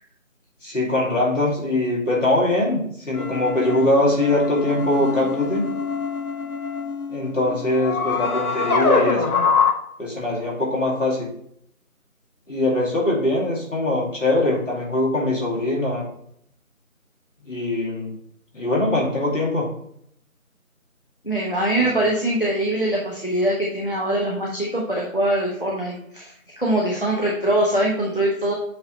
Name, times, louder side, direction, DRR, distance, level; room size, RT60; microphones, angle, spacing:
voice 1, 0.6-5.6 7.1-9.4 10.0-11.3 12.5-16.1 17.5-18.1 18.5-19.7 21.8-21.9, left 1 dB, 60° left, -4 dB, 2.6 m, -22 dB
sound 1, 3.2-9.7, left 4 dB, 85° left, 1.0 m, -24 dB
voice 2, 21.2-28.5, right 1 dB, 40° left, -3 dB, 0.8 m, -23 dB
8.0 x 3.1 x 4.0 m, 0.70 s
figure-of-eight pair, 180°, 42 cm